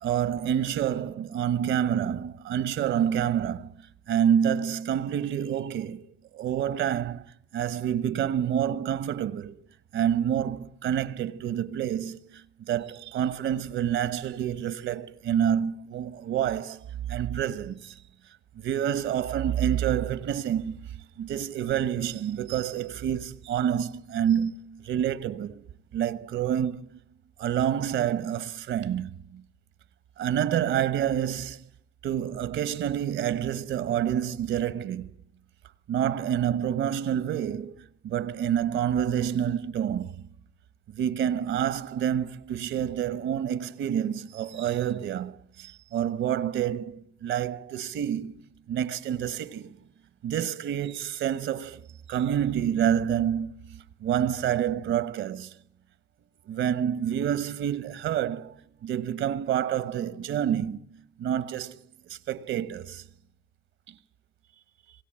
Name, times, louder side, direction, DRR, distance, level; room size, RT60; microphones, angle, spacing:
voice 1, 0.0-3.7 4.1-6.1 6.3-9.5 9.9-18.0 18.6-20.8 21.2-25.6 25.9-27.0 27.4-29.4 30.2-31.6 32.0-35.1 35.9-40.2 40.9-49.8 50.2-51.8 52.1-55.5 56.5-58.5 58.8-60.9 61.2-61.8 62.1-63.0 63.9-64.0, right 9 dB, 75° right, 1.1 m, -28 dB
27.0 x 17.5 x 8.8 m
cardioid pair, 90°, 20 cm